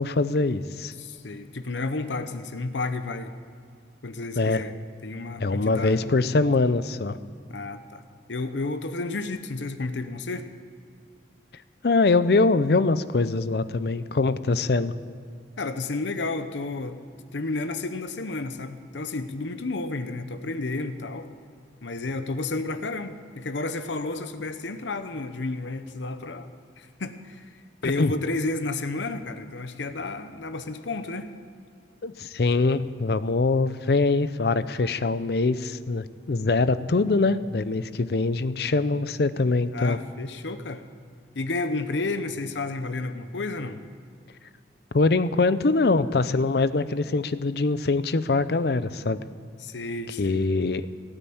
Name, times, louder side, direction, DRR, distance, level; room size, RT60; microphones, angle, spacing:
voice 1, 0.0-0.9 4.4-4.6 5.4-7.2 11.8-14.9 27.8-28.1 32.0-40.0 44.9-49.2 50.2-50.9, left 3 dB, 60° left, 14 dB, 0.5 m, -23 dB
voice 2, 1.0-3.3 4.0-6.1 7.5-8.0 8.3-10.5 15.6-17.0 17.3-21.4 21.8-26.5 26.8-31.3 39.7-40.8 41.3-43.8 49.6-50.4, left 3 dB, 85° left, 10 dB, 0.8 m, -31 dB
17.5 x 9.0 x 8.5 m, 2.2 s
head